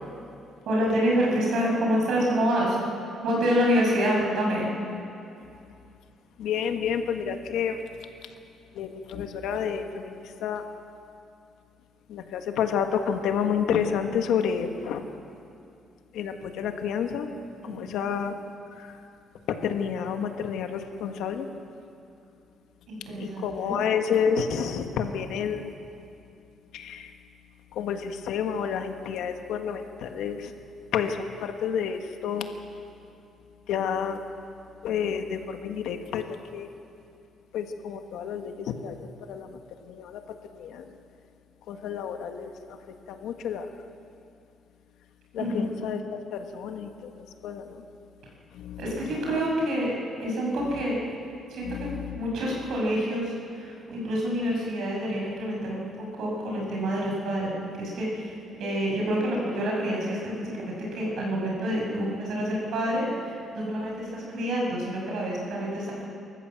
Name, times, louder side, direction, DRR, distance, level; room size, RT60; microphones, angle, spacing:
voice 1, 0.6-2.9 3.2-4.7 17.6-18.1 22.9-23.8 45.4-45.6 48.8-49.9 50.2-51.0 51.5-55.9 56.2-66.1, equal, 65° right, -2 dB, 6.6 m, -27 dB
voice 2, 6.4-7.8 8.7-10.6 12.1-15.0 16.1-17.3 17.6-18.4 18.8-18.9 19.6-21.5 23.2-25.7 26.7-27.1 27.7-30.5 30.9-32.5 33.7-34.2 34.8-36.7 37.5-39.6 39.9-40.2 40.5-40.9 41.7-42.5 43.1-43.7 45.3-47.1 47.4-47.8 48.5-48.8 49.3-49.4 51.6-52.2, left 7 dB, 85° left, 6 dB, 1.6 m, -30 dB
25.5 x 14.0 x 7.8 m, 2.6 s
cardioid pair, 165°, 0 cm